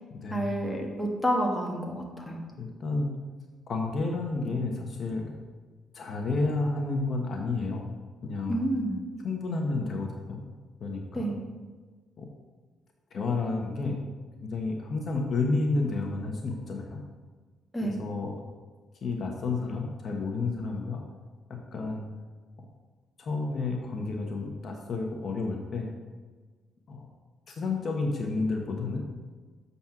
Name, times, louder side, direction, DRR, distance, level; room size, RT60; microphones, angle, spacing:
voice 1, 0.3-2.4 8.5-8.9 11.1-11.4 17.7-17.9, right 1 dB, 10° left, -1 dB, 1.6 m, -29 dB
voice 2, 2.6-3.1 3.7-5.3 5.9-7.9 8.2-8.6 9.2-10.4 10.8-11.3 12.2-12.3 13.1-14.0 14.4-17.0 17.8-18.3 19.0-21.0 21.7-22.0 23.2-25.9 26.9-27.1 27.5-29.1, left 3 dB, 50° left, 1 dB, 1.1 m, -30 dB
7.2 x 4.2 x 5.9 m, 1.4 s
cardioid pair, 90°, 0 cm